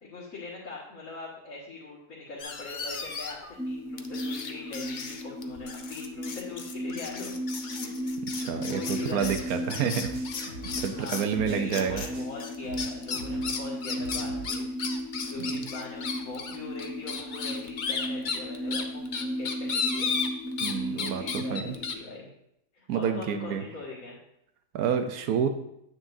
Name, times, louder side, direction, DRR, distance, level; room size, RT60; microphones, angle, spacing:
voice 1, 0.0-3.4 3.6-7.3 7.7-7.9 8.4-9.6 11.0-14.7 15.3-20.1 20.9-22.3 22.7-24.2, left 3 dB, 65° left, -8 dB, 2.2 m, -41 dB
sound 1, 2.4-3.5 4.0-11.3 11.7-12.1 12.4-20.7 21.0-21.9, left 5 dB, 50° left, 0.6 m, -34 dB
sound 2, 3.6-21.9, equal, 5° right, 0.4 m, -36 dB
voice 2, 8.4-10.1 10.4-10.6 10.8-12.0 15.4-15.5 20.6-21.7 22.9-23.6 24.7-25.5, right 7 dB, 90° right, 7 dB, 1.2 m, -29 dB
sound 3, 9.1-12.4 12.6-14.5, right 4 dB, 75° right, 2.1 m, -43 dB
9.5 x 8.9 x 2.7 m, 0.78 s
omnidirectional pair, 1.5 m